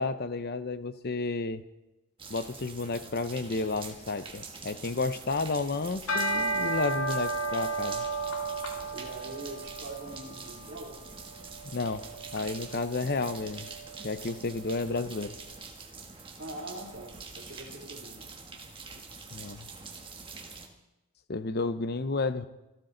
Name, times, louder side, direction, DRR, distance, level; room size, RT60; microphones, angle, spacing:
voice 1, 0.0-1.6 2.3-8.0 11.7-12.1 12.3-13.7 14.0-15.3 19.3-19.7 21.3-22.5, left 3 dB, 45° left, 12 dB, 0.7 m, -31 dB
sound 1, 2.2-20.7, right 4 dB, 25° right, 1.5 m, -45 dB
sound 2, 6.1-15.3, right 2 dB, 75° left, 2.6 m, -34 dB
voice 2, 8.9-11.0 16.2-18.3, right 1 dB, 55° right, -4 dB, 2.9 m, -43 dB
26.5 x 12.0 x 3.9 m, 1.0 s
head